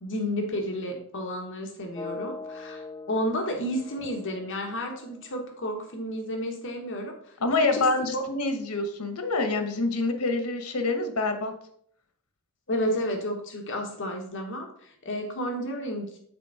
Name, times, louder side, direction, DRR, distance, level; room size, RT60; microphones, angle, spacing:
voice 1, 0.0-7.3 7.7-7.9 8.1-8.2 12.7-16.1, equal, 60° left, 2 dB, 1.2 m, -31 dB
sound 1, 1.9-5.9, left 3 dB, 20° left, 0.5 m, -42 dB
voice 2, 7.4-11.5, left 3 dB, 85° left, 7 dB, 1.1 m, -26 dB
6.8 x 4.3 x 4.8 m, 0.65 s
head